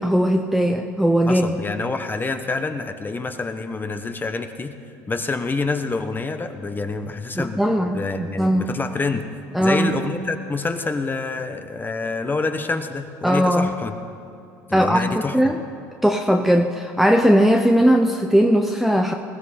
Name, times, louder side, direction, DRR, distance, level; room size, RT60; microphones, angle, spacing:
voice 1, 0.0-1.5 7.3-8.7 9.5-9.9 13.2-13.7 14.7-15.6 16.0-19.1, equal, ahead, 3 dB, 0.8 m, -19 dB
voice 2, 1.3-4.7 5.1-7.6 7.9-9.2 9.6-13.9 14.7-15.5, left 3 dB, 20° left, 7 dB, 1.3 m, -27 dB
20.5 x 15.5 x 4.3 m, 2.8 s
hypercardioid pair, 75°, 9 cm